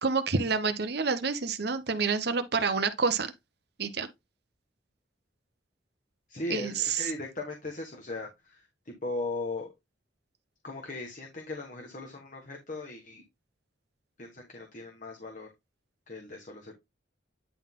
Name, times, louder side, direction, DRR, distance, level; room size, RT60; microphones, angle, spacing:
voice 1, 0.0-3.3 3.8-4.1 6.5-7.1, right 5 dB, 60° right, 0.9 m, -28 dB
voice 2, 6.3-9.7 10.6-13.2 14.2-15.5 16.1-16.7, left 2 dB, 45° left, 1.5 m, -38 dB
10.0 x 3.9 x 3.7 m
head